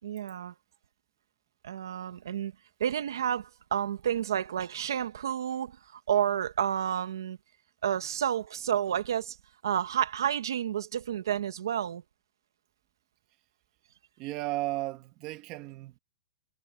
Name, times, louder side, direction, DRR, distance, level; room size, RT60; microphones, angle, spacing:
voice 1, 0.0-0.5 1.6-2.5 2.8-7.4 7.8-9.4 9.6-12.0, right 9 dB, 65° right, 1.3 m, -30 dB
voice 2, 14.2-16.0, right 18 dB, 25° right, 1.7 m, -34 dB
hypercardioid pair, 175°, 2 cm